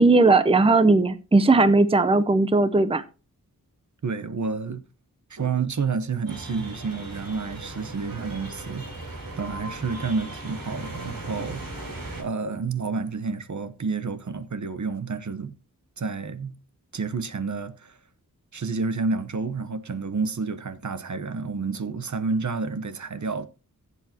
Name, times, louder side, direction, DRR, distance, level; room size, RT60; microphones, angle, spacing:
voice 1, 0.0-3.0, right 3 dB, 15° right, 0.7 m, -18 dB
voice 2, 4.0-4.8 5.3-8.9 9.4-11.6 12.2-15.5 16.0-16.5 16.9-18.0 18.5-23.5, right 4 dB, 60° right, 0.9 m, -29 dB
sound 1, 6.3-12.2, right 2 dB, 85° right, 3.7 m, -38 dB
15.0 x 8.3 x 2.8 m
wide cardioid pair, 80°, 34 cm